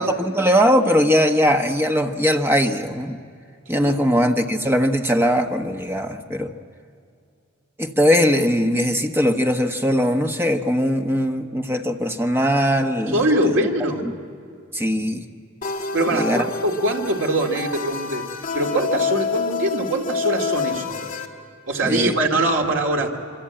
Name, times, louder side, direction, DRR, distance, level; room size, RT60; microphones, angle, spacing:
voice 1, 0.0-3.2 3.7-6.5 7.8-13.2 14.7-15.2 16.1-16.4 21.8-22.2, equal, 10° right, 5 dB, 1.1 m, -20 dB
voice 2, 3.7-4.1 13.1-14.1 15.9-18.3 18.5-21.2 21.7-23.1, right 1 dB, 65° right, 1 dB, 2.4 m, -23 dB
sound 1, 15.6-21.3, left 5 dB, 40° left, 1.9 m, -27 dB
26.0 x 24.5 x 8.9 m, 2.3 s
head